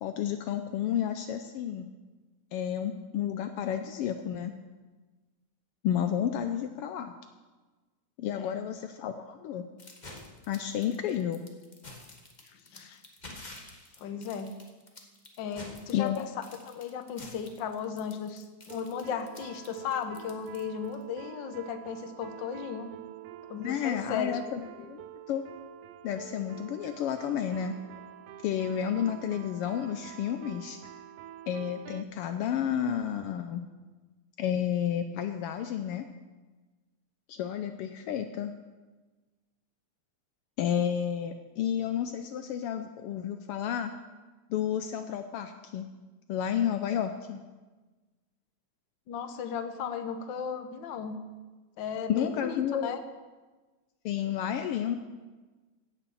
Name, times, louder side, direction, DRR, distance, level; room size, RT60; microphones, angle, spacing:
voice 1, 0.0-1.9 2.5-4.5 5.8-7.1 8.2-9.6 10.5-11.4 15.9-16.3 23.6-25.4 26.0-27.8 28.4-30.8 31.5-33.6 34.4-36.0 37.3-38.5 40.6-43.9 44.5-45.8 46.3-47.4 52.1-53.0 54.0-55.0, left 9 dB, 85° left, 8 dB, 1.2 m, -31 dB
sound 1, 9.8-21.0, left 2 dB, 30° left, 0.8 m, -49 dB
voice 2, 12.5-13.0 14.0-14.5 15.4-16.3 16.7-22.9 23.5-24.4 24.8-24.9 49.1-51.2 51.8-53.0, left 7 dB, 60° left, 8 dB, 1.2 m, -36 dB
sound 2, 18.7-32.0, right 11 dB, 85° right, 2.1 m, -47 dB
16.5 x 7.1 x 7.1 m, 1.3 s
omnidirectional pair, 3.3 m